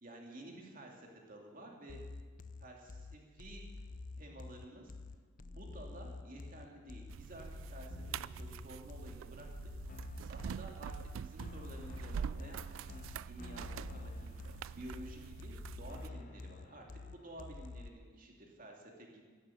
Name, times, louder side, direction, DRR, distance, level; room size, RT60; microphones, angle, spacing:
voice 1, 0.0-2.0 2.6-3.7 4.2-4.9 5.4-9.7 10.2-14.3 14.7-19.2, right 1 dB, 45° right, 0 dB, 2.6 m, -52 dB
sound 1, 1.9-17.9, left 3 dB, 40° left, 0.5 m, -48 dB
sound 2, 7.1-16.1, right 7 dB, 90° right, 0.3 m, -45 dB
12.0 x 11.0 x 8.5 m, 1.5 s
head